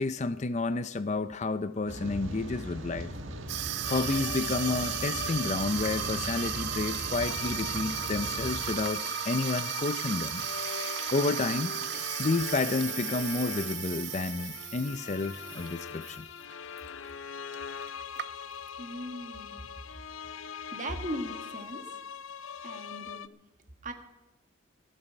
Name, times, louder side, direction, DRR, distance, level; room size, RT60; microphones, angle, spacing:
voice 1, 0.0-3.1 3.9-10.5 11.1-16.3, left 3 dB, 35° left, 13 dB, 0.5 m, -30 dB
Rain, 1.9-8.6, right 1 dB, 80° right, 1.6 m, -39 dB
Water tap faucet / Sink (filling or washing), 3.5-16.2 16.5-16.8 17.5-17.6 17.8-18.7, right 11 dB, 55° right, 0.4 m, -35 dB
sound 1, 3.8-23.3, left 8 dB, 85° left, 0.5 m, -41 dB
voice 2, 18.8-19.7 20.7-21.8 22.6-23.3 23.8-23.9, equal, 40° right, 6 dB, 1.5 m, -38 dB
14.0 x 8.3 x 9.8 m, 0.97 s
head